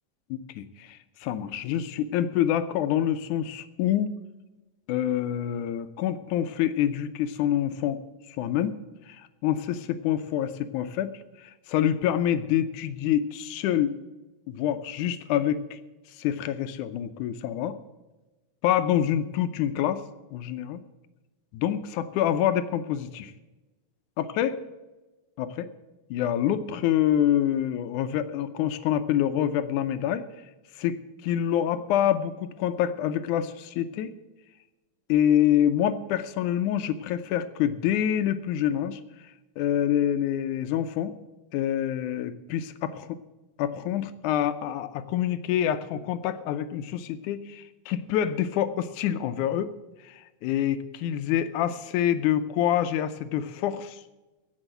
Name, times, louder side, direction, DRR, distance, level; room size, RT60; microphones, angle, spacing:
voice 1, 0.3-4.1 4.9-8.0 8.4-8.8 9.1-11.1 11.4-13.9 14.5-15.8 16.2-17.8 18.6-20.0 20.3-20.8 21.5-23.3 24.2-24.6 25.4-25.7 26.1-30.2 30.8-31.0 31.2-34.1 35.1-39.0 39.6-41.1 41.5-43.2 43.6-49.7 50.1-54.0, left 10 dB, 85° left, 11 dB, 2.2 m, -26 dB
16.0 x 6.5 x 7.9 m, 1.1 s
omnidirectional pair, 3.4 m